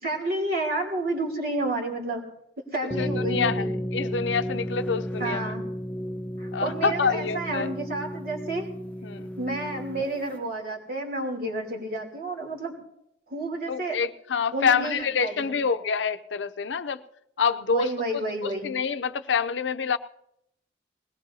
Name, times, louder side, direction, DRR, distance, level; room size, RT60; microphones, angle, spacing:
voice 1, 0.0-2.2 2.7-3.7 5.2-5.6 6.4-8.7 9.4-12.7 13.3-14.0 14.5-15.6 17.7-18.7, right 2 dB, 55° right, 1 dB, 3.0 m, -30 dB
sound 1, 2.9-10.4, equal, 10° left, 0.8 m, -33 dB
voice 2, 3.0-3.7 3.9-5.5 6.5-7.7 9.0-9.3 13.7-17.0 17.4-20.0, left 6 dB, 80° left, 12 dB, 0.6 m, -27 dB
20.5 x 18.5 x 2.8 m, 0.77 s
head